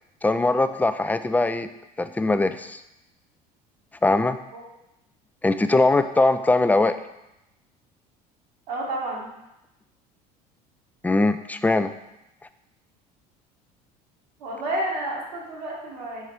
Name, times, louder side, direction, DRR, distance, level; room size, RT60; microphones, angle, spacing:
voice 1, 0.2-1.7 2.0-2.8 4.0-4.4 5.4-7.0 11.0-11.9, left 2 dB, 10° left, 11 dB, 0.3 m, -21 dB
voice 2, 8.7-9.3 14.4-16.2, right 1 dB, 75° right, -3 dB, 1.6 m, -30 dB
4.8 x 4.3 x 4.6 m, 0.90 s
hypercardioid pair, 70°, 21 cm